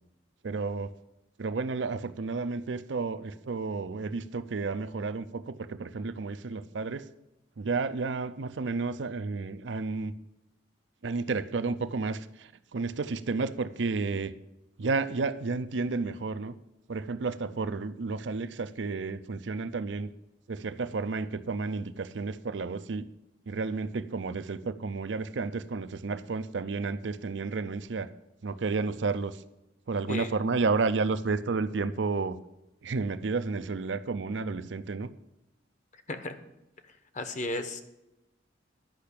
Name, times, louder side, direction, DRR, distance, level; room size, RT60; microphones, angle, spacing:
voice 1, 0.4-0.9 1.4-7.1 7.6-10.1 11.0-14.3 14.8-16.5 16.9-20.1 20.5-23.1 23.5-28.1 28.4-29.4 29.9-32.4 32.8-35.1, right 4 dB, 80° right, 12 dB, 0.6 m, -31 dB
voice 2, 37.1-37.8, left 2 dB, 45° left, 9 dB, 1.0 m, -34 dB
10.5 x 5.7 x 8.4 m, 0.92 s
head